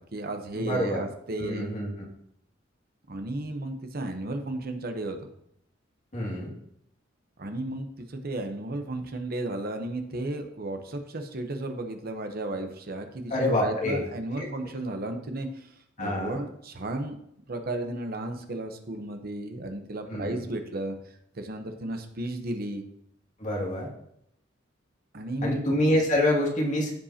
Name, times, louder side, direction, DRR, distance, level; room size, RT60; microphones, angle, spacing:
voice 1, 0.0-1.7 3.1-5.2 7.4-13.3 13.6-17.2 17.5-21.0 21.3-22.8 25.1-25.7, right 2 dB, 50° right, 6 dB, 0.9 m, -34 dB
voice 2, 0.5-1.1 1.4-1.9 6.1-6.5 13.3-14.0 14.4-14.5 16.0-16.4 20.1-20.4 23.4-23.9 25.4-27.0, left 1 dB, 40° left, -2 dB, 2.2 m, -26 dB
15.0 x 5.3 x 2.8 m, 0.75 s
head